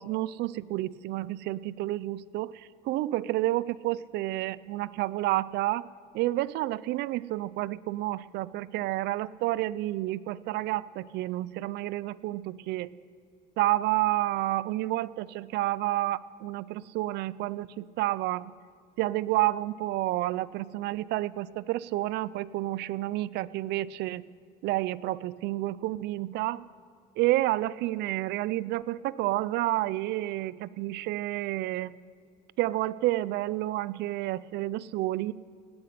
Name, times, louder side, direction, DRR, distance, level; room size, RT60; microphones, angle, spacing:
voice 1, 0.0-5.9 6.1-12.9 13.6-18.5 19.0-24.2 24.6-26.7 27.2-31.9 32.6-35.3, right 16 dB, 80° right, 19 dB, 0.4 m, -30 dB
17.5 x 5.9 x 10.0 m, 2.1 s
cardioid pair, 110°, 17 cm